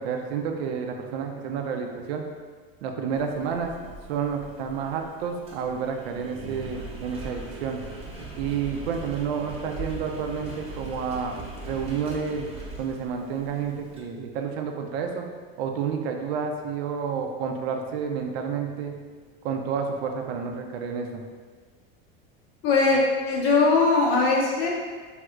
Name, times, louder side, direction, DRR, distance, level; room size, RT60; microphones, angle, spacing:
voice 1, 0.0-2.2 2.8-7.8 8.4-11.4 11.7-12.5 12.8-15.3 15.6-18.9 19.4-21.2, right 6 dB, 85° right, 3 dB, 0.5 m, -30 dB
Engine, 3.1-14.0, right 2 dB, 20° right, 0.8 m, -40 dB
voice 2, 22.6-24.7, left 3 dB, 50° left, -2 dB, 0.6 m, -20 dB
3.2 x 2.8 x 2.4 m, 1.5 s
supercardioid pair, 120°, 31 cm